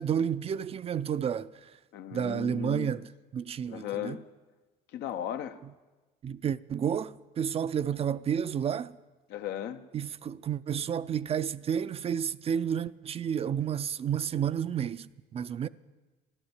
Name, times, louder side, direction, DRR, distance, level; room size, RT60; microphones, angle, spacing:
voice 1, 0.0-1.5 2.1-3.1 3.3-4.2 6.2-8.9 9.9-15.7, right 8 dB, 35° right, 0.4 m, -31 dB
voice 2, 1.9-3.0 3.7-4.2 4.9-5.6 9.3-9.8, left 10 dB, 80° left, 0.8 m, -36 dB
13.0 x 11.5 x 8.0 m
cardioid pair, 110°, 17 cm